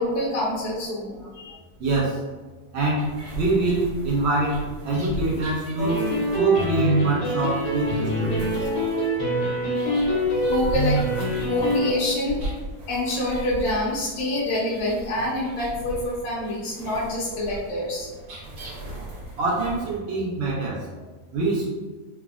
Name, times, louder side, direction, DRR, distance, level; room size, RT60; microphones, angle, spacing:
voice 1, 0.0-1.6 9.8-10.2 10.5-12.5 12.9-18.1, left 1 dB, 70° left, -5 dB, 1.1 m, -27 dB
voice 2, 1.8-2.2 2.7-3.1 3.4-6.0 6.3-8.5 19.4-20.8 21.3-21.7, right 2 dB, 80° right, -4 dB, 0.6 m, -24 dB
sound 1, 3.0-20.0, equal, 55° right, 1.2 m, -38 dB
sound 2, 5.8-11.9, right 1 dB, 85° left, 1.4 m, -24 dB
3.4 x 2.0 x 2.3 m, 1.3 s
omnidirectional pair, 1.8 m